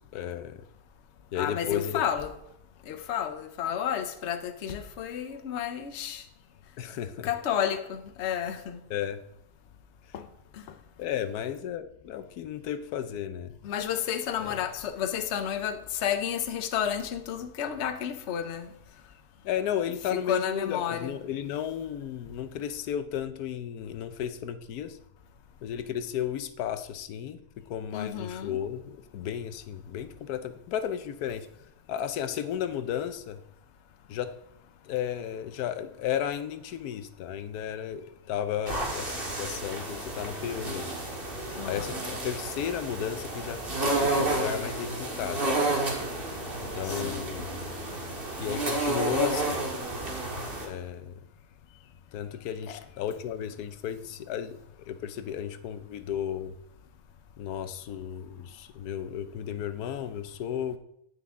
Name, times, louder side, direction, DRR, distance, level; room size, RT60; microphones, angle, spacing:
voice 1, 0.1-0.6 1.3-2.0 6.8-7.3 8.9-9.2 11.0-13.5 14.4-14.5 19.4-25.0 25.6-31.5 31.9-33.4 34.1-34.3 34.8-40.9 41.7-45.5 46.3-47.5 48.4-49.6 50.6-51.1 52.1-56.5 57.4-60.8, left 9 dB, 90° left, 1.2 m, -34 dB
voice 2, 1.3-2.4 2.9-6.2 7.2-8.8 10.1-10.3 10.5-10.6 13.6-18.7 20.1-21.2 27.9-28.6 41.5-42.0 46.8-47.3 52.7-52.8, left 9 dB, 55° left, 1.0 m, -31 dB
sound 1, 38.7-50.7, right 2 dB, 40° right, 1.9 m, -31 dB
9.6 x 9.5 x 3.7 m
omnidirectional pair, 1.6 m